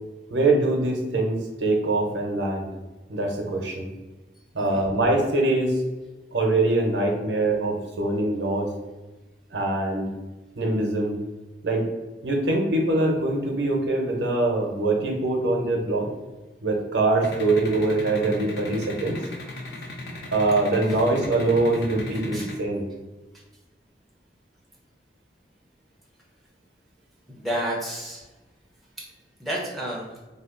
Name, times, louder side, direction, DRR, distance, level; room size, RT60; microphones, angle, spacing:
voice 1, 0.3-2.7 3.1-3.9 4.5-5.8 6.3-8.7 9.5-10.1 10.6-11.2 11.6-11.9 12.2-16.1 16.6-19.2 20.3-22.8, right 2 dB, 85° right, 1 dB, 0.7 m, -23 dB
sound 1, 17.2-22.5, left 2 dB, 65° left, 0.5 m, -36 dB
voice 2, 27.3-28.3 29.4-30.1, right 1 dB, ahead, -4 dB, 0.6 m, -30 dB
2.7 x 2.4 x 3.7 m, 1.1 s
head